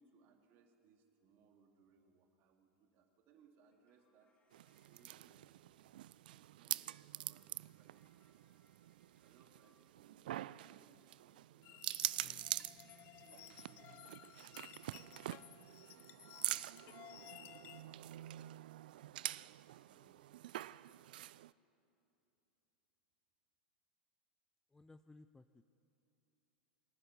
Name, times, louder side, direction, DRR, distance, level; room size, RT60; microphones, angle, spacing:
voice 1, 0.0-4.3 4.8-8.0 8.3-8.8 9.1-12.0 12.2-12.7 13.2-16.6 17.1-18.4 18.9-20.9, right 5 dB, 45° right, 4 dB, 2.6 m, -70 dB
sound 1, 3.6-5.2 7.1-9.9 12.6-15.0, left 4 dB, 30° left, 3.6 m, -78 dB
sound 2, 4.5-21.5, right 14 dB, 65° right, 0.4 m, -46 dB
sound 3, 11.6-17.8, left 13 dB, 45° left, 0.8 m, -57 dB
voice 2, 24.7-25.6, left 2 dB, 10° left, 11 dB, 0.5 m, -60 dB
25.5 x 11.0 x 9.5 m, 2.8 s
hypercardioid pair, 90°, 5 cm